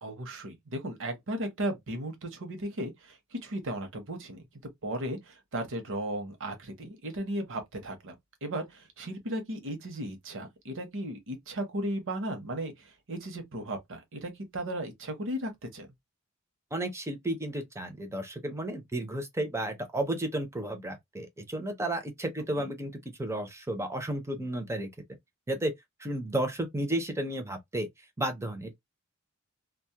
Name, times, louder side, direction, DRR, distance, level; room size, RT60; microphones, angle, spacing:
voice 1, 0.0-4.5 4.8-8.2 8.4-15.9 22.6-22.7, right 1 dB, 60° right, 0.8 m, -36 dB
voice 2, 16.7-22.9 23.2-24.9 25.5-25.7 26.0-27.9 28.2-28.7, right 1 dB, 10° right, 0.5 m, -32 dB
2.2 x 2.0 x 2.7 m
head